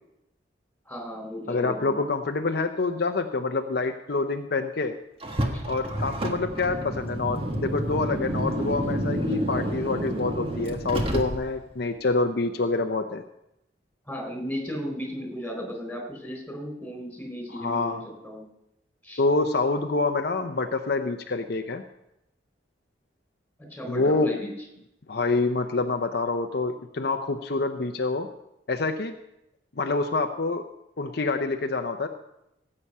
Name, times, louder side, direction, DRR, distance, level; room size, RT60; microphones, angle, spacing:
voice 1, 0.9-2.0 5.5-5.6 14.0-18.4 19.0-19.2 23.7-24.5, equal, 5° left, 2 dB, 4.0 m, -35 dB
voice 2, 1.5-5.0 5.7-13.2 17.5-18.0 19.2-21.8 23.9-24.3 25.1-28.3 28.7-29.1 29.8-30.6 31.0-32.1, left 3 dB, 60° left, 5 dB, 0.7 m, -26 dB
Car, 5.2-11.7, right 1 dB, 30° right, 1.6 m, -29 dB
18.0 x 8.7 x 5.5 m, 0.84 s
head